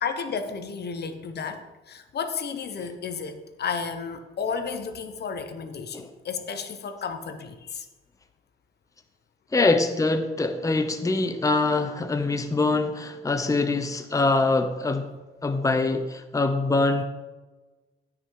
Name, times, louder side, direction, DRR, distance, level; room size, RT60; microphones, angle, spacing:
voice 1, 0.0-7.9 9.6-9.8, left 6 dB, 55° left, 9 dB, 1.2 m, -32 dB
voice 2, 9.5-15.1 15.4-17.0, left 3 dB, 15° left, 8 dB, 0.9 m, -24 dB
16.0 x 6.1 x 4.9 m, 1.2 s
cardioid pair, 90°, 20 cm